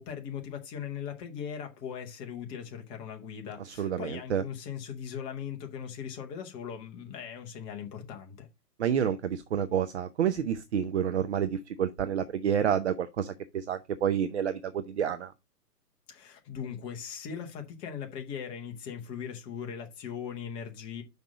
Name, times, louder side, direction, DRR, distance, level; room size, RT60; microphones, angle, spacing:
voice 1, 0.0-8.5 16.1-21.0, left 8 dB, 10° left, 0.6 m, -39 dB
voice 2, 3.6-4.4 8.8-15.3, right 8 dB, 45° right, 0.6 m, -29 dB
5.9 x 5.4 x 4.8 m
figure-of-eight pair, 120°, 48 cm